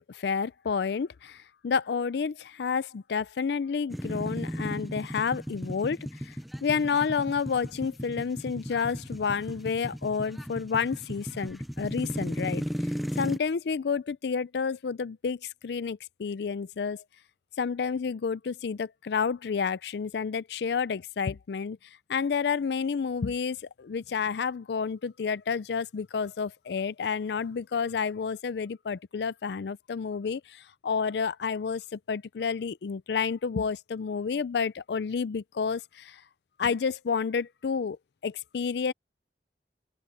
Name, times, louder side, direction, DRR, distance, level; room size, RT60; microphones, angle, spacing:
voice 1, 0.0-6.0 6.2-6.4 6.6-12.6 13.2-17.0 17.6-21.8 22.1-36.2 36.6-38.0 38.2-38.9, left 6 dB, 70° left, 0.4 m, -30 dB
sound 1, 3.9-13.4, equal, ahead, 0.4 m, -35 dB
open air
head